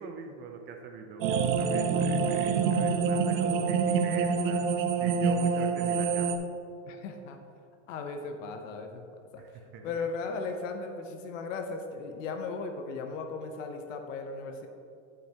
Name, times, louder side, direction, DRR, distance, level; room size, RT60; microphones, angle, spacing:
voice 1, 0.0-4.7 5.0-6.3 9.4-10.0, right 5 dB, 30° right, 4 dB, 0.4 m, -43 dB
sound 1, 1.2-6.4, right 5 dB, 75° right, 0.8 m, -26 dB
voice 2, 6.9-7.4 7.9-9.0 9.3-9.4 9.8-14.7, left 4 dB, 70° left, 5 dB, 0.9 m, -37 dB
11.0 x 5.9 x 2.9 m, 2.5 s
supercardioid pair, 145°, 40 cm